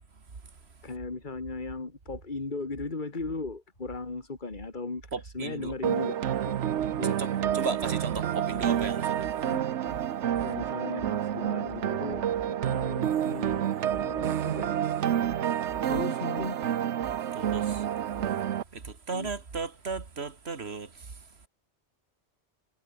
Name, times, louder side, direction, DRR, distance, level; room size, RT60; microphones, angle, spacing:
voice 1, 0.8-6.5 7.0-7.2 9.4-10.0 10.4-13.6 14.0-14.7 15.0-15.2 15.9-16.6 19.1-19.3, left 3 dB, 45° left, 2.4 m, -37 dB
voice 2, 5.1-5.7 7.2-9.3 17.3-17.9 18.7-21.1, right 4 dB, 65° right, 2.2 m, -35 dB
sound 1, 5.8-18.6, right 10 dB, 80° right, 1.1 m, -29 dB
omnidirectional pair, 1.2 m